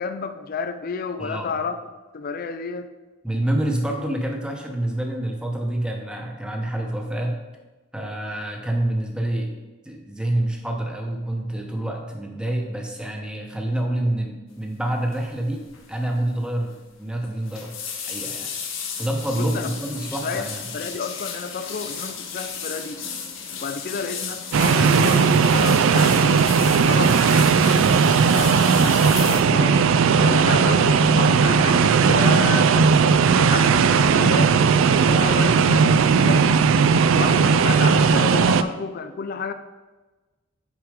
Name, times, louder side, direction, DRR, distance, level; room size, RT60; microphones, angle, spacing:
voice 1, 0.0-1.8 2.1-2.9 19.3-19.7 20.0-20.5 20.7-23.0 23.6-26.5 26.8-27.2 27.6-29.8 30.2-36.4 37.1-39.5, left 5 dB, 45° left, 10 dB, 0.4 m, -31 dB
voice 2, 1.2-1.5 3.2-7.4 7.9-9.5 9.8-15.6 15.9-16.7 17.0-17.7 18.1-18.5 19.0-20.6, right 1 dB, 5° right, 1 dB, 0.9 m, -27 dB
sound 1, 15.1-15.3 15.6-15.9 16.2-16.3 17.2-29.4, left 6 dB, 65° left, 1.0 m, -34 dB
sound 2, 24.5-38.6, right 5 dB, 65° right, 0.3 m, -17 dB
6.3 x 4.7 x 5.0 m, 1.2 s
head